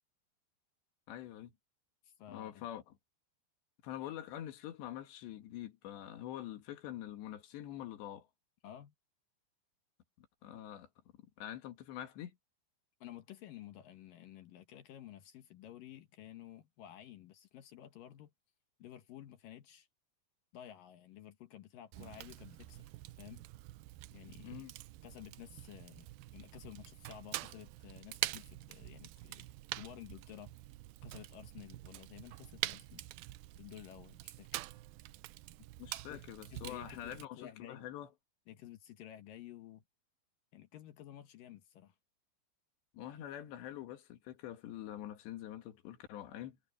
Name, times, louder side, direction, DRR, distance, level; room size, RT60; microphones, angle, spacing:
voice 1, 1.1-1.5 2.3-2.9 3.8-8.3 10.2-10.9 11.4-12.4 24.4-24.7 35.8-38.1 42.9-46.6, left 12 dB, 85° left, 4.1 m, -45 dB
voice 2, 2.0-2.7 8.6-8.9 13.0-18.3 18.8-19.9 20.5-22.9 23.2-23.4 24.1-24.6 25.0-29.5 29.7-30.5 31.0-33.1 33.6-34.5 36.1-36.2 36.5-37.9 38.5-39.8 40.5-42.0, left 12 dB, 65° left, 2.4 m, -52 dB
Fire, 21.9-37.3, right 17 dB, 85° right, 2.1 m, -45 dB
omnidirectional pair, 4.9 m